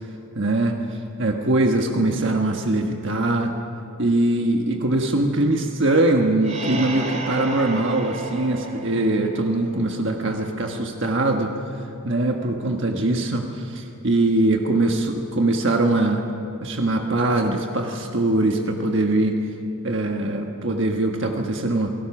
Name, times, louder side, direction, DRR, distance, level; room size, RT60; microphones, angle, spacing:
voice 1, 0.3-0.7 1.2-3.5 4.0-11.5 12.0-16.2 16.6-19.4 19.8-21.9, right 2 dB, 55° right, 2 dB, 1.4 m, -22 dB
sound 1, 6.4-10.0, right 2 dB, 30° right, 2.3 m, -33 dB
28.5 x 18.5 x 6.0 m, 2.7 s
head